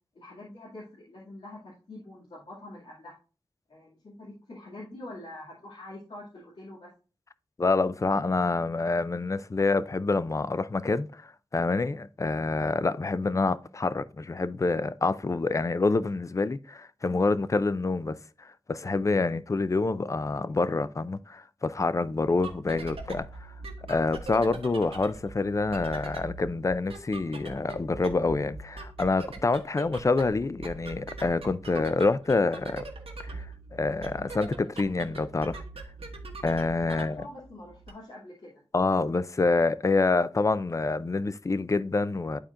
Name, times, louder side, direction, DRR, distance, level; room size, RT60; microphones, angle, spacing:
voice 1, 0.1-3.1 3.7-6.9 36.9-38.6, left 1 dB, 75° left, 2.3 m, -45 dB
voice 2, 7.6-23.5 23.9-32.9 33.2-33.5 33.7-35.6 36.4-37.2 38.7-42.4, left 3 dB, 35° left, 0.4 m, -27 dB
sound 1, 22.2-37.9, right 3 dB, 85° right, 1.2 m, -42 dB
11.5 x 4.2 x 2.5 m
wide cardioid pair, 75°, 10 cm